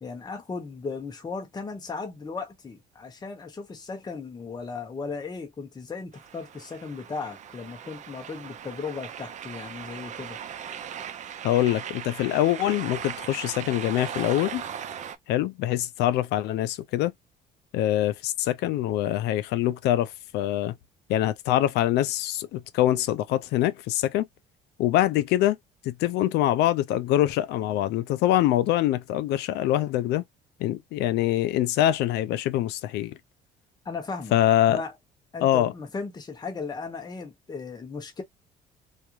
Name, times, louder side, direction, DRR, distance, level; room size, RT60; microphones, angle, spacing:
voice 1, 0.0-10.4 33.8-34.4 34.7-34.9 35.3-38.2, left 4 dB, 25° left, 0.8 m, -36 dB
sound 1, 6.1-15.2, right 8 dB, 45° right, 0.4 m, -38 dB
voice 2, 11.4-14.6 15.3-17.1 17.7-20.8 21.1-24.3 24.8-25.6 25.8-30.2 30.6-33.2 34.3-34.8 35.4-35.7, left 13 dB, 80° left, 0.4 m, -24 dB
2.4 x 2.1 x 3.0 m
cardioid pair, 110°, 17 cm